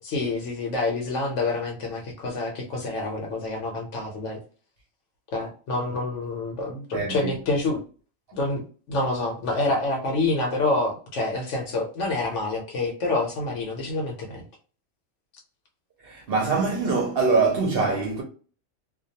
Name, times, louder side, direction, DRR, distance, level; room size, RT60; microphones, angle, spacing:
voice 1, 0.0-4.4 5.3-7.8 8.3-8.6 8.9-14.4, left 2 dB, 70° left, 0.9 m, -27 dB
voice 2, 6.9-7.3 16.0-18.2, right 4 dB, 60° right, 0.7 m, -23 dB
2.2 x 2.2 x 2.7 m
omnidirectional pair, 1.3 m